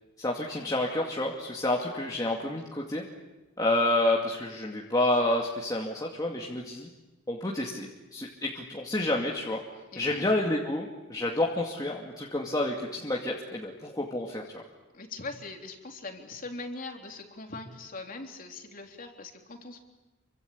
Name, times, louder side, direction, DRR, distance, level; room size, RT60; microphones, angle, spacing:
voice 1, 0.2-3.0 3.6-6.9 7.3-9.6 10.0-14.4, left 1 dB, 20° left, -2 dB, 2.5 m, -29 dB
voice 2, 9.9-10.3 14.9-19.8, left 3 dB, 45° left, 3 dB, 3.5 m, -41 dB
28.0 x 24.5 x 8.6 m, 1.1 s
head